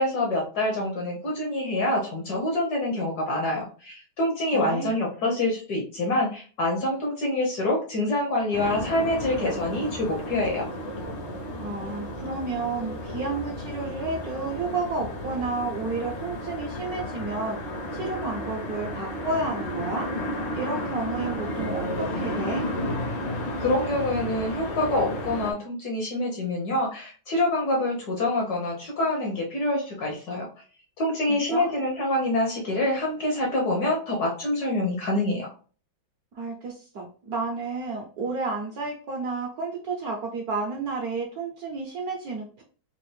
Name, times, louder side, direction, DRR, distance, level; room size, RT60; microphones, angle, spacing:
voice 1, 0.0-10.7 23.6-30.5 31.0-35.5, left 1 dB, 60° left, 0 dB, 1.2 m, -26 dB
voice 2, 4.5-5.0 11.6-17.6 17.9-20.1 20.5-22.6 31.3-31.7 36.4-42.6, right 3 dB, 60° right, 0 dB, 1.0 m, -31 dB
sound 1, 8.5-25.5, left 1 dB, 75° left, 1.8 m, -33 dB
4.1 x 2.5 x 3.1 m, 0.39 s
omnidirectional pair, 2.2 m